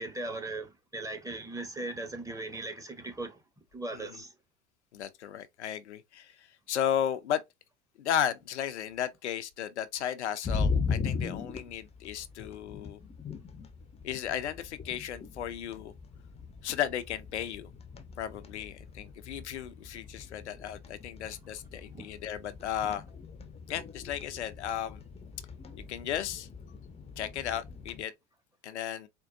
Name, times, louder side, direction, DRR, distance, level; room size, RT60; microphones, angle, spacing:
voice 1, 0.0-3.4 3.7-4.3 21.9-22.1, right 2 dB, 10° right, 0.8 m, -38 dB
voice 2, 4.9-7.4 8.0-13.0 14.0-15.9 16.6-17.7 18.2-23.0 23.7-25.0 25.9-26.5 27.2-28.1 28.6-29.1, left 9 dB, 80° left, 0.5 m, -34 dB
sound 1, 10.4-28.0, left 5 dB, 20° left, 0.6 m, -39 dB
4.4 x 2.2 x 2.5 m
figure-of-eight pair, 75°, 34 cm